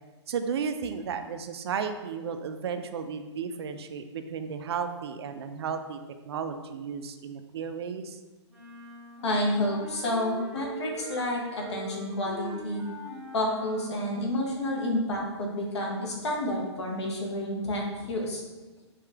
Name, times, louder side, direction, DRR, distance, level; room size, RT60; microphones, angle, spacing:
voice 1, 0.3-6.0 6.2-8.2, right 6 dB, 60° right, 8 dB, 0.4 m, -34 dB
sound 1, 8.5-14.2, left 1 dB, 10° right, 0.8 m, -43 dB
voice 2, 9.2-12.8 13.3-18.4, left 1 dB, 70° left, -1 dB, 1.2 m, -30 dB
4.9 x 2.7 x 3.4 m, 1.2 s
hypercardioid pair, 140°, 15 cm